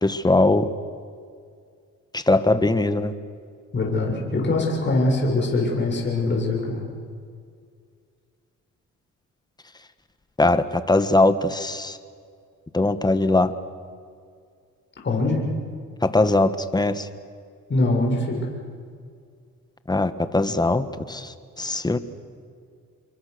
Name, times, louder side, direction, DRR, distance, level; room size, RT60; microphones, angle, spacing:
voice 1, 0.0-0.7 2.1-3.1 10.4-12.0 12.7-13.5 16.0-17.1 19.9-22.0, left 2 dB, 15° left, 11 dB, 1.4 m, -21 dB
voice 2, 3.7-6.8 15.0-15.5 17.7-18.4, left 2 dB, 40° left, -1 dB, 7.0 m, -23 dB
28.0 x 23.0 x 6.8 m, 2.2 s
cardioid pair, 90°, 30 cm